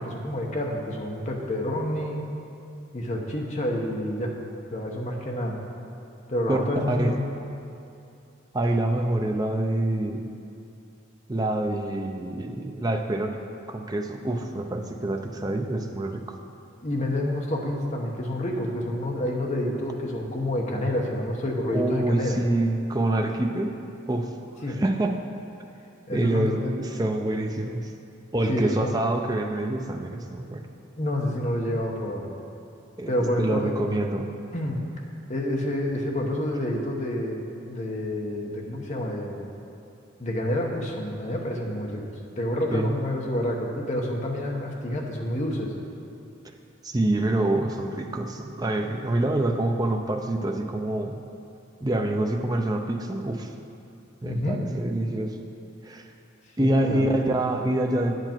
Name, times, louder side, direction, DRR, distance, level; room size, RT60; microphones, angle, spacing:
voice 1, 0.0-2.3 2.9-4.3 4.7-5.6 6.3-7.2 16.8-22.4 24.6-24.8 26.1-26.7 28.5-28.9 31.0-32.3 33.1-33.7 34.5-34.8 35.3-39.4 40.2-42.0 42.4-45.7 54.2-54.6 56.6-57.1, left 1 dB, 35° left, 0 dB, 1.0 m, -28 dB
voice 2, 6.5-7.2 8.5-10.2 11.3-13.4 13.7-16.2 21.7-23.8 24.1-24.3 24.7-25.2 26.1-27.9 28.3-30.7 33.0-34.3 42.7-42.9 46.8-51.2 51.8-53.5 54.2-55.4 55.8-56.1 56.6-58.1, right 1 dB, 20° right, 3 dB, 0.5 m, -26 dB
8.8 x 7.9 x 4.5 m, 2.6 s
head